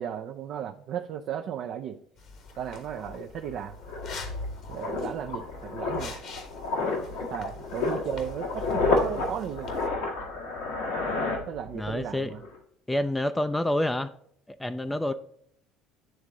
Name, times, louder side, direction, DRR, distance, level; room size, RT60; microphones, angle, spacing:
voice 1, 0.0-2.0 2.6-3.7 4.7-6.2 7.3-9.7 11.5-12.4, right 9 dB, 60° right, 4 dB, 0.4 m, -35 dB
sound 1, 2.2-9.9, left 4 dB, 60° left, 1.3 m, -46 dB
sound 2, 2.6-2.7 3.0-12.0 12.3-12.6, left 3 dB, 85° left, 1.6 m, -31 dB
voice 2, 11.7-12.3 12.9-14.1 14.6-15.1, left 1 dB, 10° left, 10 dB, 0.4 m, -27 dB
9.0 x 3.6 x 3.8 m, 0.68 s
hypercardioid pair, 70°, 0 cm